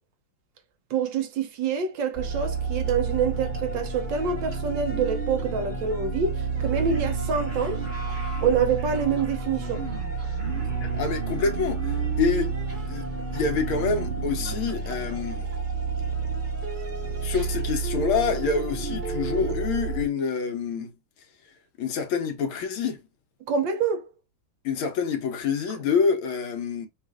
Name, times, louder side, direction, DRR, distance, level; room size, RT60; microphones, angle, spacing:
voice 1, 0.9-7.8 8.4-9.8 23.4-24.1, right 6 dB, 70° right, 1.4 m, -26 dB
sound 1, 2.1-20.0, right 4 dB, 25° right, 1.3 m, -30 dB
voice 2, 10.8-12.5 12.9-13.1 13.3-15.5 17.2-20.9 21.8-23.0 24.7-26.9, left 5 dB, 85° left, 1.8 m, -27 dB
6.5 x 2.5 x 2.3 m
omnidirectional pair, 2.3 m